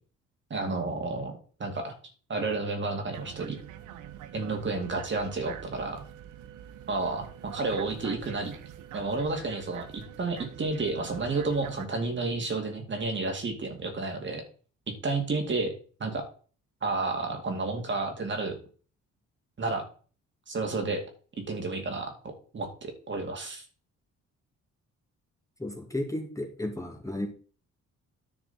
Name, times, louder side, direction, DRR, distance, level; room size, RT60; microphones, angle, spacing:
voice 1, 0.5-1.9 2.3-3.6 4.3-6.0 6.9-8.6 8.9-14.4 14.9-15.7 16.0-16.2 16.8-18.6 19.6-19.9 20.5-21.0 21.5-23.6, right 3 dB, 40° right, 3 dB, 2.2 m, -31 dB
sound 1, 3.1-11.9, right 11 dB, 90° right, 0.8 m, -45 dB
voice 2, 25.6-27.3, left 1 dB, 10° left, 2 dB, 2.1 m, -33 dB
10.5 x 6.0 x 4.1 m, 0.40 s
cardioid pair, 90°, 30 cm